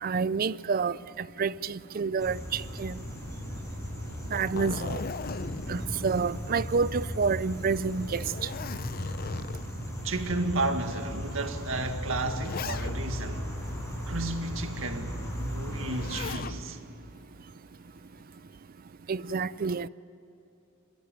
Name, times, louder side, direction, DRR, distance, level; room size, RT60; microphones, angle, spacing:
voice 1, 0.0-1.0 1.4-3.0 4.3-5.0 5.7-8.2 19.1-19.9, right 5 dB, 45° right, 0.5 m, -28 dB
sound 1, 2.2-16.3, equal, 15° left, 5.2 m, -37 dB
Zipper (clothing), 4.1-7.0 7.4-7.5 8.0-9.9 10.6-10.7 11.7-13.2 15.7-16.6 18.0-18.4, left 4 dB, 45° left, 0.6 m, -38 dB
voice 2, 10.0-13.5 14.1-16.8, right 2 dB, 75° right, 2.0 m, -32 dB
29.0 x 15.5 x 9.3 m
head